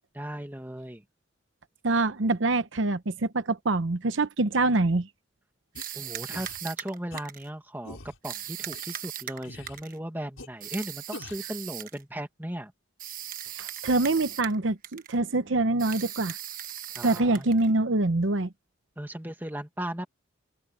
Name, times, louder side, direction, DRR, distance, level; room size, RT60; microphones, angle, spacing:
voice 1, 0.1-1.0 5.9-12.7 17.0-17.5 19.0-20.1, right 1 dB, 10° right, 1.8 m, -37 dB
voice 2, 1.8-5.1 13.5-16.4 17.0-18.5, right 2 dB, 70° right, 0.9 m, -25 dB
sound 1, 5.7-5.8 6.3-6.6 7.1-7.2 7.8-8.2 8.7-8.8 9.4-9.8 10.4-10.5 11.1-11.5, left 2 dB, 85° left, 5.0 m, -43 dB
sound 2, 5.7-7.5 8.2-10.0 10.6-12.0 13.0-14.6 14.8-15.2 15.8-17.7, right 11 dB, 45° right, 1.2 m, -38 dB
open air
head